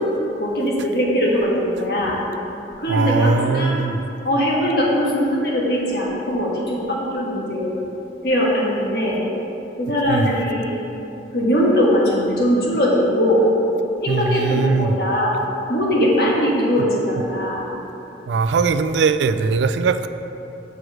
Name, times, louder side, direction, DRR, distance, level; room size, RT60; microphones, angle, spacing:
voice 1, 0.4-2.2 2.8-3.8 4.2-7.7 8.2-9.2 9.8-10.8 11.3-13.5 14.0-15.3 15.7-17.6, equal, 60° left, -4 dB, 1.4 m, -20 dB
voice 2, 2.9-4.1 10.1-10.3 14.1-15.0 18.3-20.1, right 4 dB, 85° right, 11 dB, 0.3 m, -20 dB
6.2 x 4.6 x 6.3 m, 2.9 s
head